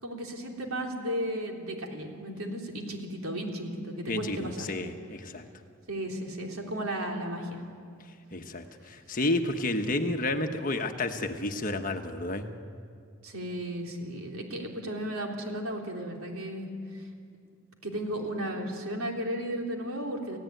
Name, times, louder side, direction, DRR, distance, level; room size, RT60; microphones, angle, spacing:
voice 1, 0.0-4.7 5.9-7.6 13.2-17.0 17.8-20.4, equal, 70° right, 1 dB, 3.7 m, -34 dB
voice 2, 4.1-5.4 8.3-12.5, left 2 dB, 40° left, 6 dB, 1.3 m, -31 dB
30.0 x 16.5 x 9.3 m, 2.3 s
head